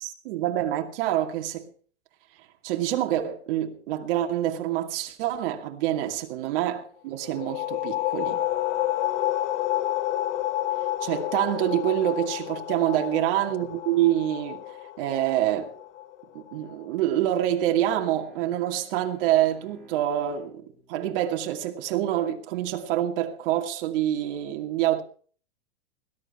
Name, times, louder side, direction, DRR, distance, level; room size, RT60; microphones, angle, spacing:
voice 1, 0.0-1.7 2.6-8.4 11.0-15.7 16.3-25.0, right 12 dB, 50° right, 2.6 m, -26 dB
sound 1, 7.2-16.6, left 14 dB, 70° left, 1.4 m, -30 dB
Bowed string instrument, 17.0-22.3, equal, ahead, 7.9 m, -55 dB
20.5 x 12.0 x 4.4 m
supercardioid pair, 160°, 36 cm